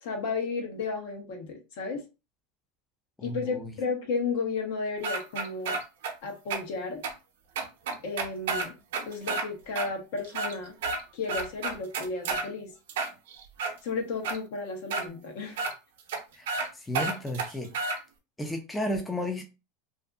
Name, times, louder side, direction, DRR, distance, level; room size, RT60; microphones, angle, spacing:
voice 1, 0.0-2.0 3.2-5.8 6.2-7.0 8.0-8.7 9.0-10.7 11.1-12.7 13.8-15.6, left 4 dB, 65° left, 0.9 m, -33 dB
voice 2, 3.2-3.7 16.3-16.5 16.7-17.7 18.4-19.4, left 1 dB, 10° left, 0.4 m, -33 dB
sound 1, 5.0-6.1 6.5-6.6 7.0-7.1 7.6-9.5 9.8-9.9 10.2-11.0 11.3-12.5 12.9-13.7 14.2-14.4 14.9-15.0 15.6-15.7 16.1-16.2 16.5-16.7 16.9-18.0, right 4 dB, 85° right, 0.6 m, -30 dB
2.6 x 2.5 x 2.3 m
supercardioid pair, 155°, 0 cm